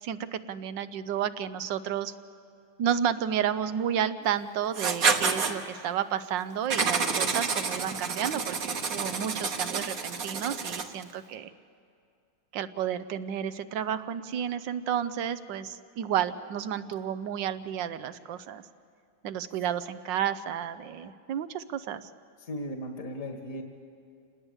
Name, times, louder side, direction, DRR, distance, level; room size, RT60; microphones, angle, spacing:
voice 1, 0.0-2.1 2.8-11.5 12.5-18.6 19.2-22.1, right 9 dB, 70° right, 13 dB, 1.4 m, -31 dB
Writing, 4.7-5.5 6.7-11.0, right 5 dB, 50° right, 1.5 m, -29 dB
voice 2, 22.4-23.6, equal, 45° left, 3 dB, 2.0 m, -36 dB
28.5 x 20.0 x 8.1 m, 2.4 s
omnidirectional pair, 2.2 m